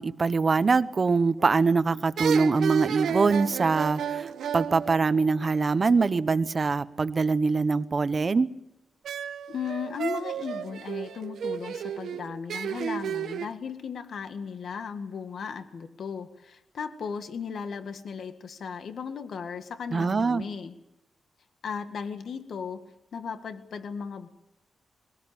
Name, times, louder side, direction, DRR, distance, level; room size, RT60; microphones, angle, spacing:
voice 1, 0.0-8.5 19.9-20.5, right 4 dB, 35° right, 13 dB, 1.0 m, -23 dB
sound 1, 1.4-1.8 2.2-5.8 9.0-13.5, right 8 dB, 90° right, 0.9 m, -33 dB
voice 2, 9.5-20.8 21.6-22.8 23.1-24.3, left 6 dB, 70° left, 8 dB, 1.8 m, -36 dB
22.5 x 18.5 x 8.8 m, 0.88 s
wide cardioid pair, 120°, 0 cm